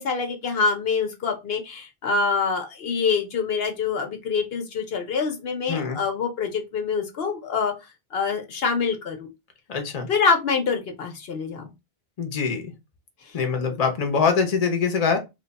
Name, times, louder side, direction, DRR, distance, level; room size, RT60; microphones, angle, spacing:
voice 1, 0.0-7.7 8.1-9.2 10.1-11.7, left 5 dB, 70° left, 1.0 m, -25 dB
voice 2, 5.7-6.0 9.7-10.1 12.2-12.7 13.3-15.2, left 5 dB, 40° left, 0.8 m, -23 dB
3.0 x 2.2 x 3.9 m
omnidirectional pair, 1.1 m